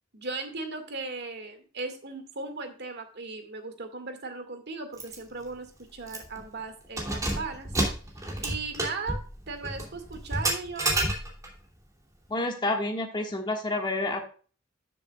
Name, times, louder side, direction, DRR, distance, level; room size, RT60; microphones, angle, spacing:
voice 1, 0.1-7.7 8.4-11.1, right 3 dB, 55° right, 6 dB, 2.0 m, -37 dB
Keys jangling, 5.0-5.2 5.5-5.6 6.1-6.4 6.8-11.6, right 1 dB, 15° right, 2.7 m, -30 dB
voice 2, 12.3-14.2, left 2 dB, 25° left, 2 dB, 1.6 m, -29 dB
13.0 x 7.0 x 2.3 m, 0.38 s
head